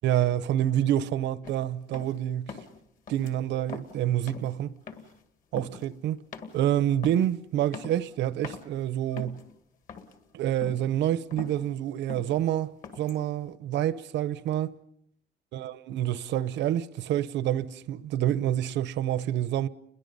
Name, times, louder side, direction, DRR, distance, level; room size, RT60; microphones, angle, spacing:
voice 1, 0.0-2.6 3.1-4.8 5.5-6.2 6.5-9.4 10.3-14.8 15.5-19.7, right 11 dB, 65° right, 0.8 m, -27 dB
sound 1, 1.4-1.6 1.9-2.2 2.5-2.8 3.1-3.3 3.6-4.0 4.3-4.5 4.9-5.2 5.5-5.9 6.3-6.6 7.0-7.3 7.7-8.2 8.4-8.7 9.1-9.5 9.9-10.3 10.6-10.9 11.2-11.6 12.1-12.4 12.8-13.2, left 5 dB, 45° left, 2.0 m, -42 dB
30.0 x 22.0 x 5.4 m
cardioid pair, 180°, 19 cm